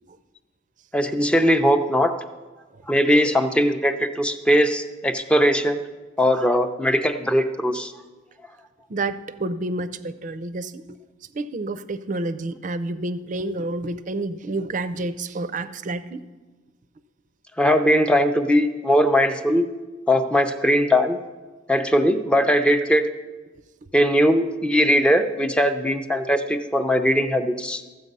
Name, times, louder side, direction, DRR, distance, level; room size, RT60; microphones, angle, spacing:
voice 1, 0.9-2.1 2.9-5.8 6.2-7.9 17.6-19.7 20.1-21.2 21.7-23.1 23.9-27.8, equal, 5° left, 7 dB, 0.5 m, -20 dB
voice 2, 8.9-11.0 11.3-16.2, right 2 dB, 40° right, 14 dB, 0.5 m, -29 dB
13.5 x 7.9 x 5.4 m, 1.3 s
head